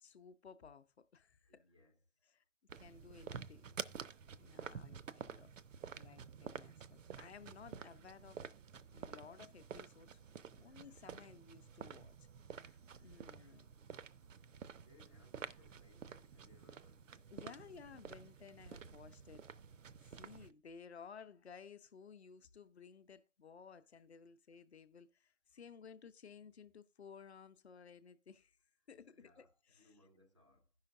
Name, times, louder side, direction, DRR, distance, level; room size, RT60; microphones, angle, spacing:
voice 1, 0.0-1.4 2.8-3.7 4.4-5.5 6.0-8.5 8.9-10.2 10.6-12.2 12.6-13.7 17.3-19.4 20.1-28.6 28.9-29.9, left 6 dB, 55° left, 0.7 m, -57 dB
voice 2, 1.4-2.4 4.5-5.1 5.8-6.2 10.6-11.0 12.9-13.3 14.8-17.3 28.8-30.7, left 2 dB, 25° right, 0.4 m, -70 dB
sound 1, 2.7-20.5, right 7 dB, 75° right, 0.5 m, -51 dB
16.0 x 5.6 x 2.5 m
figure-of-eight pair, 145°, 38 cm